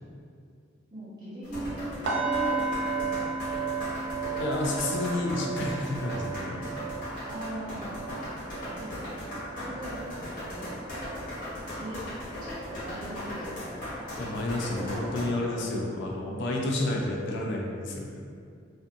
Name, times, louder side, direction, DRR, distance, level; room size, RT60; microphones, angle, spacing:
voice 1, 0.9-3.6 7.3-8.0 8.6-10.7 11.7-12.0 12.4-13.8 14.4-15.2 15.5-15.8, right 1 dB, 20° right, -11 dB, 0.9 m, -40 dB
sound 1, 1.4-15.2, left 1 dB, 50° left, 1.0 m, -38 dB
sound 2, 2.1-12.0 12.3-12.6 13.0-13.2, right 5 dB, 60° right, 0.4 m, -35 dB
voice 2, 4.4-6.6 14.2-18.2, left 2 dB, 65° left, -1 dB, 0.4 m, -30 dB
2.5 x 2.3 x 2.6 m, 2.3 s
head